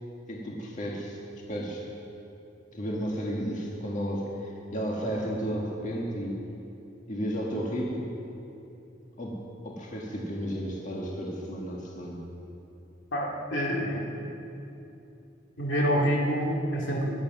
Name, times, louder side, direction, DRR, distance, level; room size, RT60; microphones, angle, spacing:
voice 1, 0.3-1.2 1.5-1.8 2.7-6.4 7.1-8.1 9.2-12.2, equal, 40° left, -2 dB, 1.8 m, -33 dB
voice 2, 13.1-14.0 15.6-17.2, equal, 75° left, -2 dB, 2.2 m, -27 dB
22.5 x 7.5 x 6.0 m, 2.8 s
head